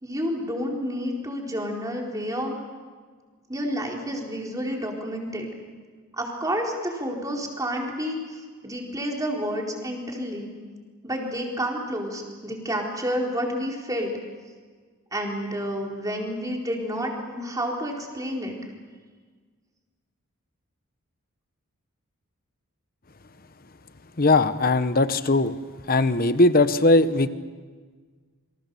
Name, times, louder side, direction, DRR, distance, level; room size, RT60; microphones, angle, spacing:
voice 1, 0.0-2.6 3.5-5.5 6.1-10.6 11.0-14.1 15.1-18.5, equal, 15° right, 0 dB, 4.2 m, -30 dB
voice 2, 24.2-25.5 25.9-27.3, left 2 dB, 40° left, 12 dB, 1.0 m, -19 dB
28.5 x 25.0 x 7.0 m, 1.5 s
head